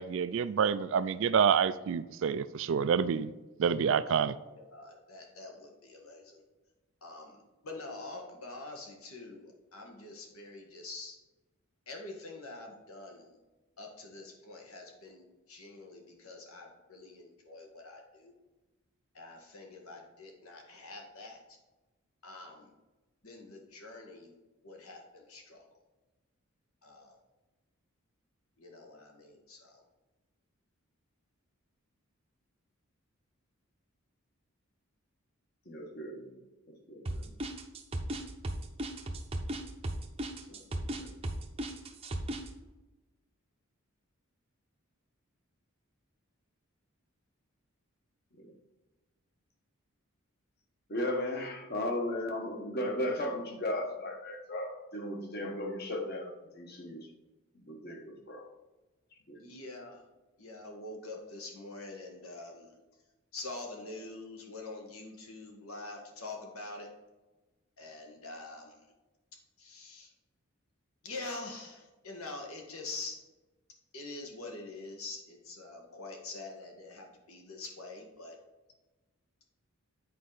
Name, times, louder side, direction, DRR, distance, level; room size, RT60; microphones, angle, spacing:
voice 1, 0.0-3.3 3.6-4.3, right 7 dB, 60° right, 15 dB, 0.3 m, -28 dB
voice 2, 4.1-6.4 7.0-11.2 11.9-13.4 13.8-18.3 19.1-21.6 22.2-22.7 23.2-24.3 24.6-25.6 26.8-27.2 28.6-29.8 40.5-40.7 59.3-60.0 60.4-62.7 63.3-66.9 67.8-68.8 69.6-70.1 71.0-73.2 73.9-78.4, left 2 dB, 80° left, 2 dB, 1.6 m, -45 dB
voice 3, 35.7-36.4 36.7-37.3 40.7-41.1 48.4-48.5 50.9-57.1 57.5-58.5 59.3-59.4, left 1 dB, 45° left, 1 dB, 1.3 m, -36 dB
sound 1, 37.1-42.5, right 1 dB, 25° right, 0.6 m, -35 dB
8.4 x 4.8 x 4.0 m, 1.1 s
head